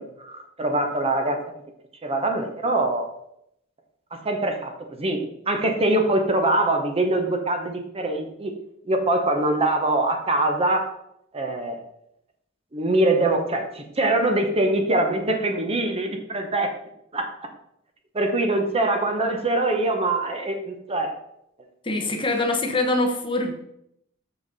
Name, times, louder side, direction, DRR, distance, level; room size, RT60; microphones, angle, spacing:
voice 1, 0.0-1.4 2.0-3.0 4.1-8.5 8.8-10.9 11.3-11.8 12.7-16.7 17.1-17.5 18.1-21.1, right 2 dB, 30° right, 4 dB, 0.9 m, -23 dB
voice 2, 21.8-23.5, left 2 dB, 25° left, 4 dB, 0.8 m, -24 dB
6.8 x 5.7 x 4.1 m, 0.77 s
head